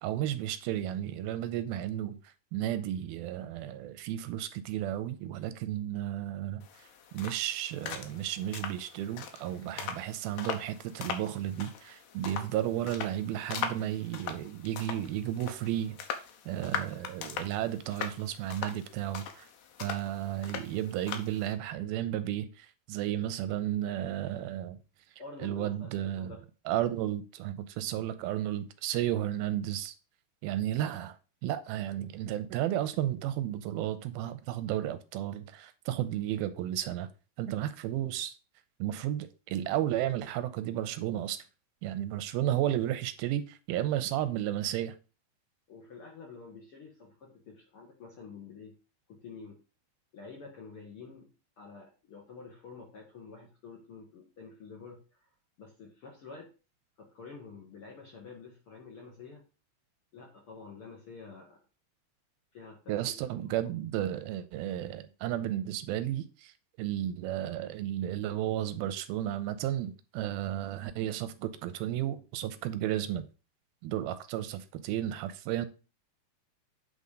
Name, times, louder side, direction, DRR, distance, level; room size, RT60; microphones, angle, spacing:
voice 1, 0.0-6.6 7.1-16.0 16.5-19.5 19.8-24.8 25.4-26.3 26.7-29.9 30.4-31.2 31.4-37.1 37.4-38.4 38.8-41.4 41.8-45.0 62.9-66.5 66.8-73.3 73.8-75.7, right 12 dB, 85° right, 2.4 m, -33 dB
sound 1, 6.6-21.5, left 7 dB, 75° left, 2.7 m, -41 dB
voice 2, 25.2-26.4 45.7-48.7 49.1-49.6 50.1-51.3 51.6-55.3 55.6-56.5 57.0-59.4 60.1-61.6 62.5-63.1 63.6-63.7, left 4 dB, 55° left, 1.7 m, -48 dB
8.5 x 4.1 x 5.2 m
omnidirectional pair, 4.4 m